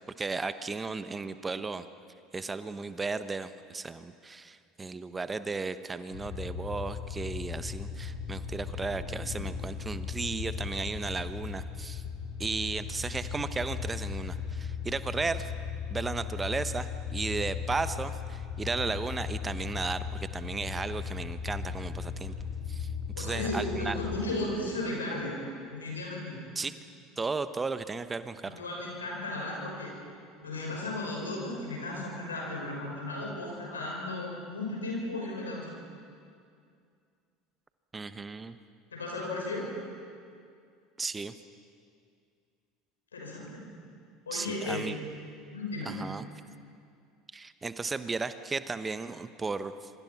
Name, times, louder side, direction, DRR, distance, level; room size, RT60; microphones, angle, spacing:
voice 1, 0.2-1.8 2.3-12.0 12.4-15.5 15.9-22.3 22.7-22.9 23.2-24.0 26.5-26.8 27.2-28.5 37.9-38.6 41.0-41.3 44.3-45.0 45.8-46.2 47.3-49.9, right 4 dB, 20° right, 12 dB, 1.0 m, -35 dB
sound 1, 6.1-24.2, left 6 dB, 55° left, 5.6 m, -37 dB
voice 2, 23.1-25.4 25.7-26.4 28.4-29.9 30.4-35.8 38.9-39.7 43.1-43.7 44.3-45.1 45.5-45.9, left 2 dB, 85° left, -1 dB, 6.4 m, -35 dB
26.0 x 25.5 x 6.0 m, 2.3 s
figure-of-eight pair, 70°, 0 cm